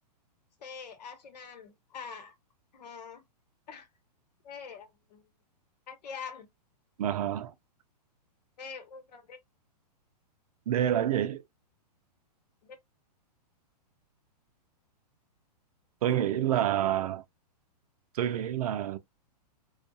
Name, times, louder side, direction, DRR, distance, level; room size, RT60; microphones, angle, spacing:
voice 1, 0.6-2.3 2.7-3.2 3.7-3.9 4.4-5.2 5.9-6.5 8.6-9.4 12.6-12.8, left 6 dB, 75° left, 1.0 m, -44 dB
voice 2, 7.0-7.5 10.7-11.5 16.0-17.2 18.1-19.0, right 11 dB, 60° right, 0.5 m, -28 dB
2.3 x 2.3 x 2.6 m
hypercardioid pair, 155°, 21 cm